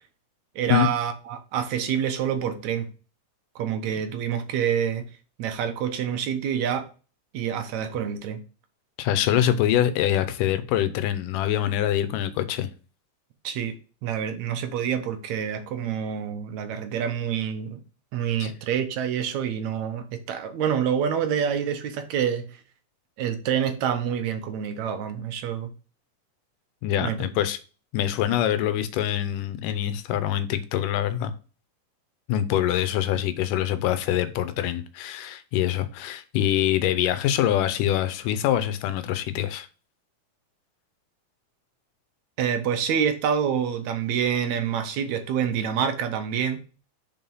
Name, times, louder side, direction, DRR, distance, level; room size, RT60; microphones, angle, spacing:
voice 1, 0.6-2.9 3.6-5.1 5.4-6.9 7.3-8.4 13.4-17.8 18.1-22.6 23.2-25.7 27.0-27.3 42.4-46.6, right 8 dB, 70° right, 2.0 m, -27 dB
voice 2, 9.0-12.7 18.4-18.5 26.8-27.6 27.9-31.3 32.3-39.7, left 11 dB, 85° left, 2.3 m, -24 dB
5.6 x 4.7 x 5.4 m
omnidirectional pair, 3.7 m